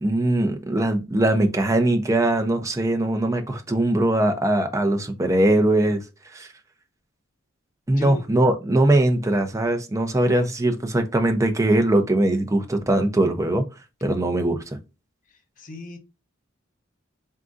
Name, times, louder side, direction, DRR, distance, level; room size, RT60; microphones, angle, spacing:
voice 1, 0.0-6.0 6.3-6.5 7.9-13.7 14.0-14.6, right 1 dB, 15° right, 0.6 m, -21 dB
voice 2, 7.9-8.3 15.3-16.0, left 1 dB, 40° left, 0.7 m, -37 dB
3.7 x 3.6 x 2.5 m
head